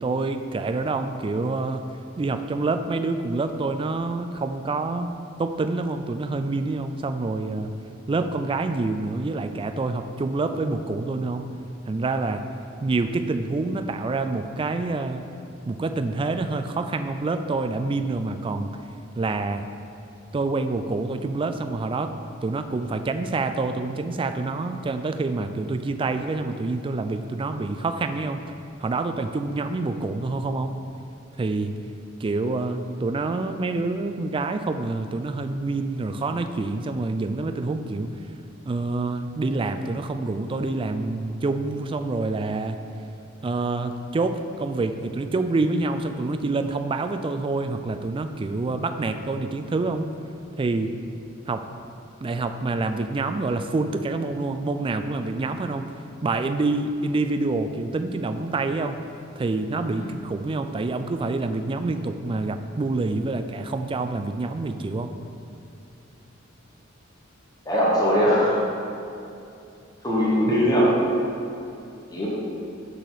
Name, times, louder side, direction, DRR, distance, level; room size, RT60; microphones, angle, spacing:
voice 1, 0.0-1.9 2.2-5.1 5.4-7.7 8.1-11.5 11.9-12.4 12.8-15.3 15.7-18.8 19.2-19.7 20.3-22.1 22.4-28.4 28.8-30.7 31.4-31.8 32.2-38.1 38.7-42.8 43.4-50.1 50.6-51.0 51.5-51.7 52.2-55.9 56.2-59.0 59.4-65.1, right 3 dB, 25° right, 8 dB, 0.3 m, -27 dB
voice 2, 67.7-68.6 70.0-70.9 72.1-72.3, equal, 20° left, -6 dB, 1.2 m, -20 dB
6.5 x 6.5 x 4.0 m, 2.7 s
head